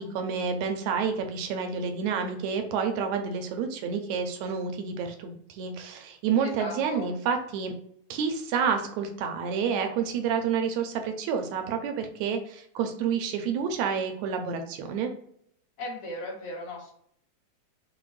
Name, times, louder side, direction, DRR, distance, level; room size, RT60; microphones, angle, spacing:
voice 1, 0.0-7.7 8.1-15.1, right 6 dB, 80° right, 5 dB, 1.7 m, -29 dB
voice 2, 6.4-7.1 15.8-16.9, left 1 dB, 65° left, -5 dB, 2.3 m, -37 dB
5.8 x 2.2 x 3.1 m, 0.68 s
omnidirectional pair, 3.5 m